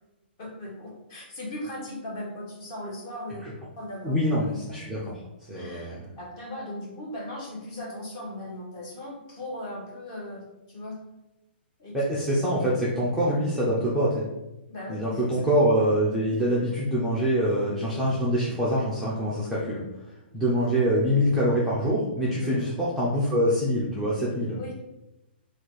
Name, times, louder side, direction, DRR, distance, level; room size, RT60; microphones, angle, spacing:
voice 1, 0.4-3.4 3.8-4.2 5.5-11.0 11.8-12.0 14.7-15.5 20.5-20.7 22.4-22.7 24.6-24.8, left 1 dB, 30° left, -2 dB, 1.2 m, -38 dB
voice 2, 4.0-5.1 5.5-6.1 11.9-14.2 14.9-19.8 20.3-24.6, equal, ahead, -9 dB, 0.5 m, -25 dB
4.1 x 2.4 x 4.6 m, 0.96 s
hypercardioid pair, 170°, 6 cm